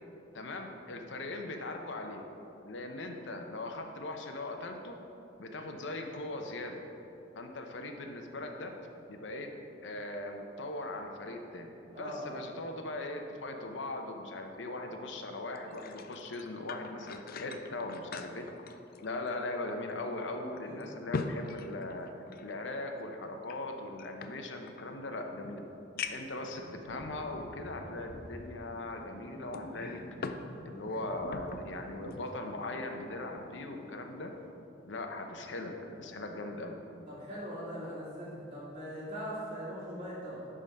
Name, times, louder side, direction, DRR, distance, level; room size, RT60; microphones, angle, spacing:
voice 1, 0.3-2.2 2.7-5.0 5.4-6.8 7.3-8.7 9.1-9.5 9.8-11.7 12.0-18.4 19.0-22.1 22.4-25.7 26.1-30.0 30.6-34.3 34.8-36.8, left 2 dB, 70° left, 4 dB, 0.8 m, -39 dB
voice 2, 11.9-12.4 20.6-20.9 37.1-40.5, equal, 30° right, -12 dB, 1.9 m, -41 dB
sound 1, 15.5-19.6 19.9-20.0 20.6-22.6 23.4-24.9 25.4-25.5 26.0-26.4 27.2-27.3 29.5-30.5 30.8-31.7 32.1-32.3, left 4 dB, 50° left, 0.4 m, -41 dB
sound 2, 26.0-34.4, equal, 75° right, 1.2 m, -49 dB
11.0 x 3.8 x 5.3 m, 2.9 s
head